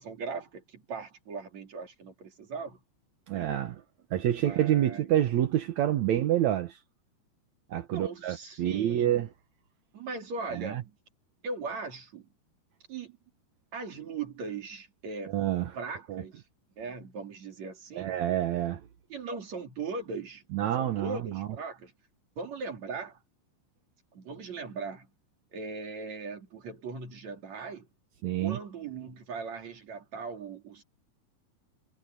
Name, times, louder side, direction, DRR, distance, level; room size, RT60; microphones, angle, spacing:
voice 1, 0.0-2.8 3.3-3.5 4.4-5.1 7.9-9.2 9.9-11.0 11.4-12.3 12.9-13.2 13.7-15.4 15.7-16.4 16.8-18.2 19.1-21.9 22.4-23.2 24.1-25.1 25.5-27.9 28.4-30.8, right 4 dB, 45° right, 4.0 m, -39 dB
voice 2, 3.3-3.8 4.1-6.8 7.7-9.3 10.5-10.8 15.3-15.7 16.1-16.2 18.0-18.8 20.5-21.5 28.2-28.6, right 12 dB, 80° right, 1.6 m, -27 dB
omnidirectional pair, 4.9 m